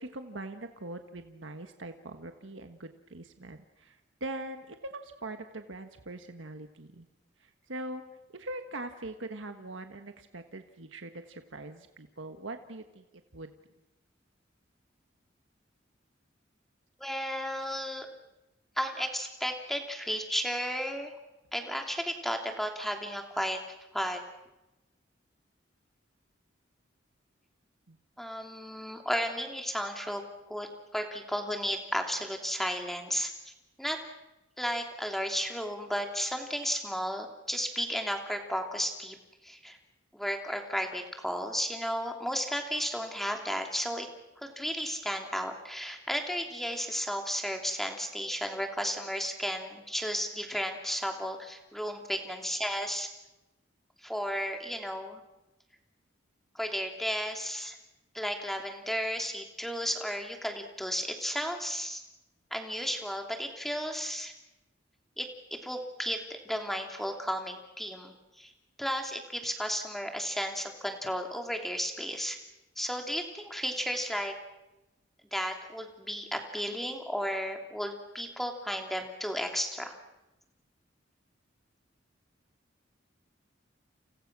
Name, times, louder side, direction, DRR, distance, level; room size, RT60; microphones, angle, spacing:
voice 1, 0.0-7.1 7.4-8.0 8.3-13.0 13.3-13.5 27.9-28.0, right 2 dB, 85° right, 7 dB, 1.5 m, -42 dB
voice 2, 17.0-18.1 18.8-21.1 21.5-23.6 23.9-24.2 28.2-30.2 30.5-33.5 33.8-34.0 34.6-39.2 39.4-39.8 40.1-44.1 44.4-53.1 54.0-55.2 56.5-57.8 58.1-62.0 62.5-64.3 65.2-68.5 68.8-72.4 72.8-74.3 75.3-80.0, equal, ahead, 3 dB, 2.9 m, -33 dB
30.0 x 29.5 x 6.2 m, 0.99 s
head